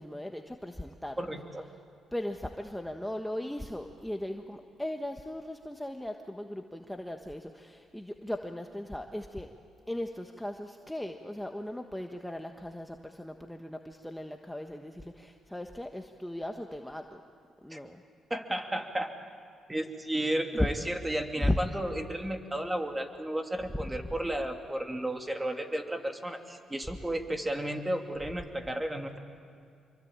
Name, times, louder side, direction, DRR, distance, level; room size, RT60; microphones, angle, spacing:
voice 1, 0.0-1.2 2.1-9.5 9.9-17.2 17.6-18.0 20.5-20.7 21.4-21.6, left 1 dB, 5° left, 4 dB, 1.4 m, -37 dB
voice 2, 1.2-1.7 17.7-17.8 18.3-19.1 19.7-29.2, right 1 dB, 15° right, 4 dB, 2.6 m, -33 dB
25.5 x 23.5 x 8.9 m, 2.3 s
cardioid pair, 75°, 0 cm